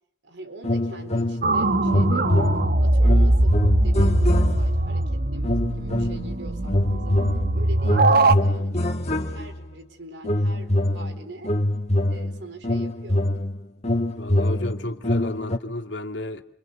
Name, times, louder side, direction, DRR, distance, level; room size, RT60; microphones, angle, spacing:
voice 1, 0.2-7.2 7.5-11.5 12.1-13.3, right 1 dB, 80° right, 4.5 m, -43 dB
sound 1, 0.6-1.6 1.8-4.9 5.4-6.3 6.6-9.7 10.2-15.6, left 1 dB, 40° left, 1.7 m, -24 dB
sound 2, 1.4-8.3, right 2 dB, 60° right, 1.3 m, -21 dB
voice 2, 14.2-16.4, left 1 dB, 90° left, 2.3 m, -32 dB
29.5 x 25.0 x 7.3 m
head